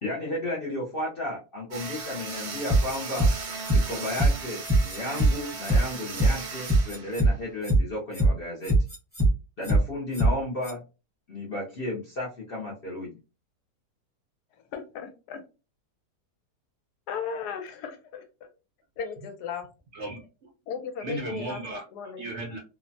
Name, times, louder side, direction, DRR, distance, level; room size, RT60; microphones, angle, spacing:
voice 1, 0.0-3.3 3.7-8.8 9.6-10.8 11.3-13.2, left 1 dB, 60° left, -4 dB, 0.6 m, -33 dB
sound 1, 1.7-7.7, right 4 dB, 75° right, 1.4 m, -37 dB
sound 2, 2.7-3.3 3.6-3.8 4.1-4.3 4.6-5.3 5.6-5.8 6.1-6.3 6.6-7.3 7.6-7.8 8.1-8.3 8.6-9.3 9.6-9.8 10.1-10.3 10.6-10.7, right 2 dB, 10° left, 0.8 m, -21 dB
voice 2, 14.7-15.4 17.1-18.5 19.0-19.7 20.7-22.3, left 6 dB, 80° left, 7 dB, 1.1 m, -36 dB
voice 3, 19.9-20.5 21.0-21.8 22.2-22.6, right 2 dB, 60° right, 1 dB, 0.8 m, -35 dB
3.1 x 2.1 x 2.5 m, 0.30 s
omnidirectional pair, 1.7 m